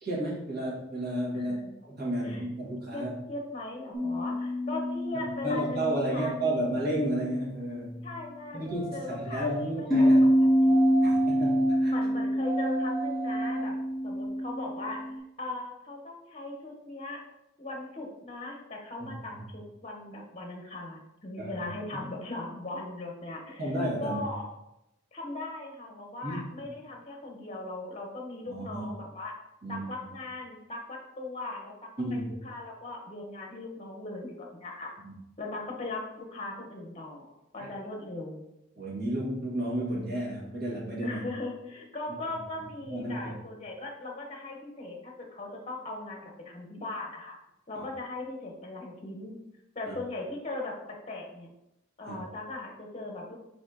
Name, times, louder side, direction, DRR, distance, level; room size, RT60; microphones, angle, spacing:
voice 1, 0.0-1.6 1.8-3.1 5.1-8.1 8.5-10.2 11.0-11.9 19.0-19.4 21.4-21.7 23.6-24.2 26.2-26.4 28.5-28.9 29.6-30.1 32.0-32.3 35.0-35.1 37.6-37.7 38.8-41.2 42.9-43.3 47.7-47.9 49.9-50.0 52.1-52.2, right 1 dB, 50° right, -5 dB, 1.7 m, -32 dB
voice 2, 1.3-1.7 2.2-2.5 2.9-6.7 8.0-8.7 8.9-10.1 10.4-11.2 11.9-13.7 14.0-15.0 15.4-17.2 17.6-23.7 24.0-24.5 25.1-29.3 29.7-34.9 35.4-38.4 41.0-47.4 47.7-49.4 49.7-50.8 51.1-51.5 52.0-53.4, left 2 dB, 30° left, 0 dB, 0.8 m, -39 dB
sound 1, 3.9-8.5 9.9-15.2, equal, ahead, 0.7 m, -27 dB
sound 2, 8.7-9.7 10.7-11.8 12.4-13.7 14.3-14.4, right 4 dB, 25° right, 0.3 m, -38 dB
4.5 x 4.2 x 2.7 m, 0.88 s
head